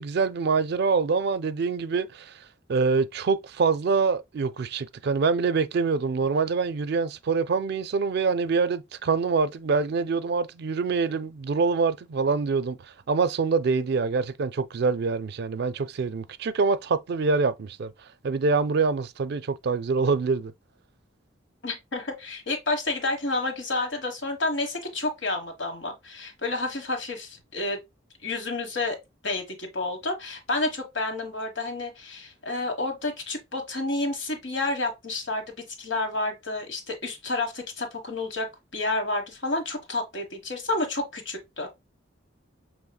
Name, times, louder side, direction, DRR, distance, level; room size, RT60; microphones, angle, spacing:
voice 1, 0.0-2.3 2.7-12.8 13.1-17.9 18.2-20.5, right 4 dB, 55° right, 0.4 m, -25 dB
voice 2, 21.6-27.8 28.2-29.0 29.2-38.5 38.7-41.7, left 2 dB, 70° left, 1.4 m, -30 dB
6.3 x 3.1 x 2.2 m
head